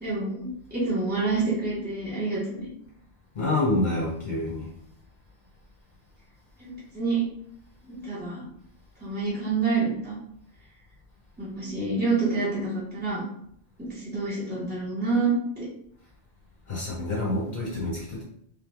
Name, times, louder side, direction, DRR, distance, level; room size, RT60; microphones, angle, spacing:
voice 1, 0.0-2.7 6.6-7.2 7.8-8.5 9.0-10.2 11.4-13.2 13.8-15.6, right 3 dB, 10° right, -9 dB, 1.4 m, -28 dB
voice 2, 3.4-4.7 16.7-18.2, left 2 dB, 50° left, -5 dB, 1.0 m, -27 dB
3.4 x 3.3 x 3.5 m, 0.72 s
omnidirectional pair, 1.0 m